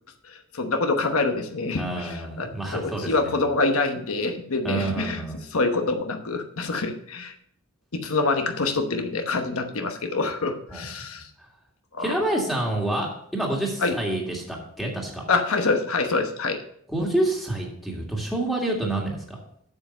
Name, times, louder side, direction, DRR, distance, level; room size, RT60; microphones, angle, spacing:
voice 1, 0.3-5.2 5.5-7.3 7.9-11.3 11.9-12.1 13.8-14.0 15.3-16.6, left 3 dB, 75° left, 6 dB, 1.0 m, -26 dB
voice 2, 1.8-3.4 4.6-5.4 10.7-10.8 12.0-15.2 16.9-19.4, right 1 dB, ahead, -2 dB, 1.9 m, -28 dB
8.3 x 7.3 x 5.4 m, 0.66 s
head